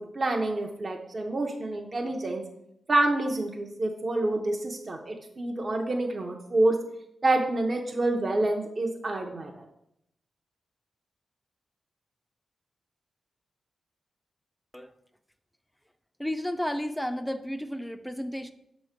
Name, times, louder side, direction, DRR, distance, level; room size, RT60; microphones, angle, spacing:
voice 1, 0.0-2.4 2.9-6.7 7.2-9.7, right 2 dB, 45° right, 2 dB, 0.7 m, -27 dB
voice 2, 16.2-18.5, equal, 5° left, 9 dB, 0.4 m, -32 dB
6.4 x 3.1 x 5.0 m, 0.80 s
cardioid pair, 60°, 0 cm